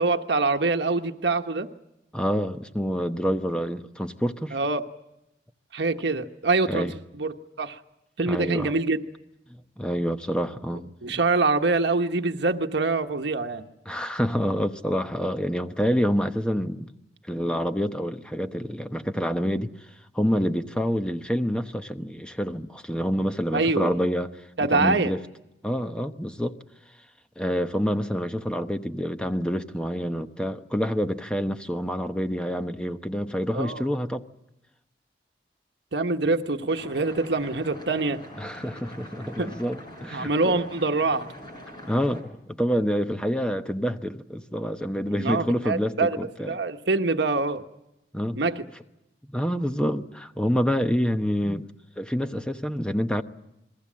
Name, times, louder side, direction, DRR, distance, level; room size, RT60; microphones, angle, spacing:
voice 1, 0.0-1.7 4.5-4.8 5.7-6.9 7.1-7.8 8.2-9.0 11.0-13.7 23.5-23.9 24.6-25.1 33.5-33.9 35.9-38.2 39.4-39.5 40.1-41.3 45.2-46.2 46.5-47.6 48.4-48.6, right 3 dB, 80° right, 1.2 m, -25 dB
voice 2, 2.1-4.6 6.7-6.9 8.2-8.7 9.5-11.2 13.9-16.9 17.3-19.7 20.1-24.5 24.7-25.2 25.6-26.6 27.4-34.3 38.4-40.6 41.9-46.6 48.1-48.4 49.3-51.7 52.0-53.2, equal, 5° left, 0.9 m, -27 dB
sound 1, 36.7-42.2, equal, 25° left, 5.9 m, -43 dB
28.5 x 21.5 x 7.5 m
head